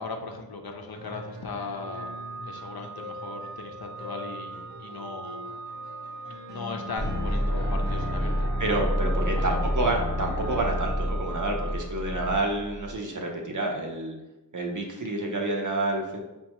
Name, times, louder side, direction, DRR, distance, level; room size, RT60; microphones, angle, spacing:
voice 1, 0.0-2.1 2.4-5.4 6.5-8.5 8.8-8.9 9.2-9.6, left 3 dB, 55° left, 3 dB, 0.5 m, -38 dB
sound 1, 0.9-8.5, left 2 dB, 70° right, 0.9 m, -43 dB
Organ, 1.8-12.6, right 4 dB, 5° left, 0.4 m, -41 dB
sound 2, 7.0-12.9, equal, 30° left, 1.0 m, -28 dB
voice 2, 8.6-14.1 14.5-16.2, right 2 dB, 45° right, 1 dB, 0.7 m, -29 dB
5.2 x 2.3 x 2.9 m, 1.0 s
wide cardioid pair, 75°, 44 cm